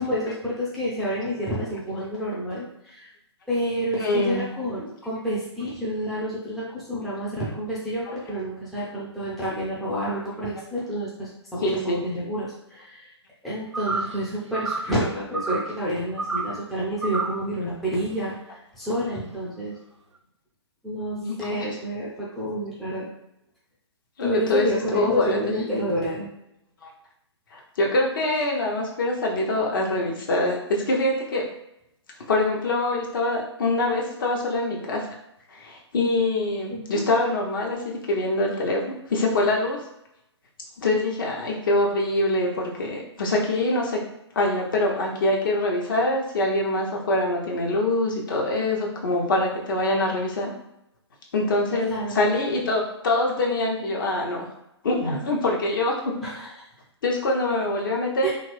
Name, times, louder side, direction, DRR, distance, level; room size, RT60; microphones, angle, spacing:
voice 1, 0.0-3.1 3.5-13.1 13.4-19.8 20.8-23.1 24.2-26.3 36.7-37.0 51.9-52.2 56.2-56.5 58.2-58.3, equal, ahead, -9 dB, 0.5 m, -29 dB
voice 2, 4.0-4.4 8.1-8.2 11.6-12.0 21.1-21.7 24.2-25.4 26.8-26.9 27.5-31.5 32.3-35.0 35.5-39.8 40.8-44.0 44.3-50.5 51.3-54.5 54.8-56.1 57.0-58.3, left 2 dB, 45° left, -1 dB, 0.8 m, -24 dB
sound 1, 13.7-14.2 14.5-15.0 15.3-15.7 16.2-16.6 17.0-17.4, right 3 dB, 80° right, 0.4 m, -29 dB
2.8 x 2.6 x 3.2 m, 0.83 s
figure-of-eight pair, 125°, 15 cm